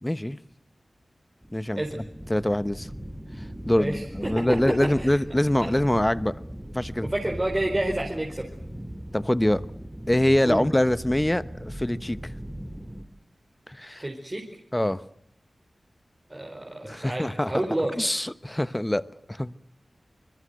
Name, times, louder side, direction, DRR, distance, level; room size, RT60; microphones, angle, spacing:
voice 1, 0.0-0.4 1.5-2.9 3.7-6.4 6.7-7.1 9.1-9.6 10.1-12.2 13.7-14.0 14.7-15.0 16.8-17.6 18.0-19.5, left 1 dB, 15° left, 1.0 m, -24 dB
sound 1, 1.4-13.0, equal, 10° right, 2.5 m, -39 dB
voice 2, 3.8-5.1 5.6-5.7 7.1-8.5 10.5-10.6 14.0-14.4 16.3-17.9, right 1 dB, 25° right, 4.4 m, -29 dB
26.0 x 21.5 x 8.0 m
cardioid pair, 50°, 0 cm